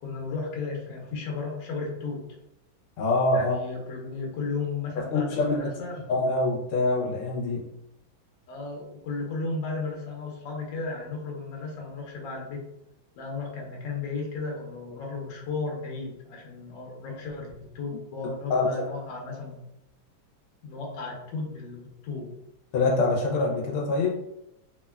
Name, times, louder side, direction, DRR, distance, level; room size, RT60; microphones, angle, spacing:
voice 1, 0.0-2.2 3.3-6.1 8.5-12.6 13.2-19.6 20.6-22.3, left 4 dB, 70° left, -1 dB, 1.3 m, -34 dB
voice 2, 3.0-3.6 5.0-5.6 6.1-7.6 18.5-18.9 22.7-24.1, left 2 dB, 90° left, -1 dB, 1.5 m, -25 dB
3.6 x 2.2 x 2.2 m, 0.85 s
omnidirectional pair, 2.2 m